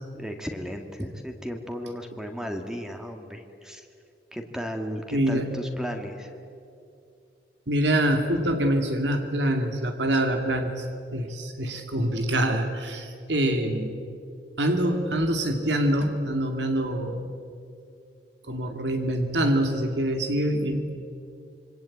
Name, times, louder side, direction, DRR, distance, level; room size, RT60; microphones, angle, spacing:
voice 1, 0.1-3.9 4.3-6.3, equal, 5° right, 4 dB, 1.9 m, -35 dB
voice 2, 5.1-5.5 7.7-10.9 11.1-14.0 14.6-17.3 18.5-20.9, right 1 dB, 85° right, 5 dB, 2.4 m, -25 dB
26.5 x 24.5 x 8.7 m, 2.5 s
head